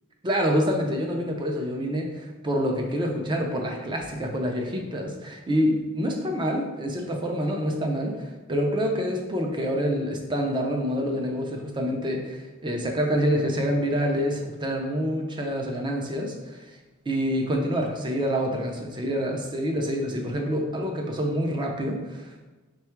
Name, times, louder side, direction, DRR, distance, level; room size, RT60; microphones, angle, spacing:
voice 1, 0.2-16.8 17.1-22.5, equal, 20° right, 1 dB, 0.4 m, -27 dB
3.5 x 2.3 x 4.4 m, 1.2 s
head